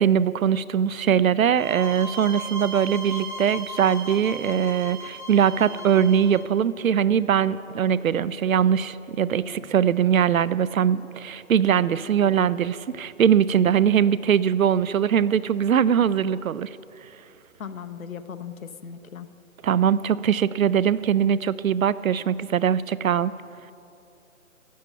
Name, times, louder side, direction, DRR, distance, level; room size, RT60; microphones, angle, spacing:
voice 1, 0.0-16.7 19.6-23.3, right 8 dB, 70° right, 18 dB, 0.5 m, -21 dB
sound 1, 1.5-6.5, right 1 dB, 35° right, 1.2 m, -37 dB
sound 2, 5.5-14.7, right 3 dB, 25° left, 3.7 m, -49 dB
voice 2, 17.6-19.3, left 7 dB, 70° left, 10 dB, 0.9 m, -37 dB
14.0 x 7.0 x 9.1 m, 2.7 s
hypercardioid pair, 175°, 43 cm